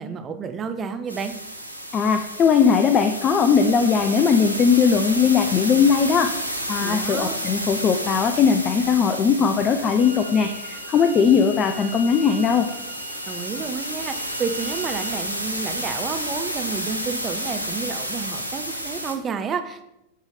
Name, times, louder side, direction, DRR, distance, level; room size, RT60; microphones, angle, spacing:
voice 1, 0.0-1.4 6.8-7.4 13.3-19.8, right 6 dB, 25° right, 8 dB, 0.6 m, -30 dB
sound 1, 1.1-19.1, equal, 90° left, 0.7 m, -31 dB
voice 2, 1.9-12.7, left 6 dB, 30° left, 7 dB, 0.4 m, -19 dB
sound 2, 10.0-15.2, equal, 60° left, 1.4 m, -40 dB
8.1 x 3.2 x 4.0 m, 0.86 s
figure-of-eight pair, 90°, 0 cm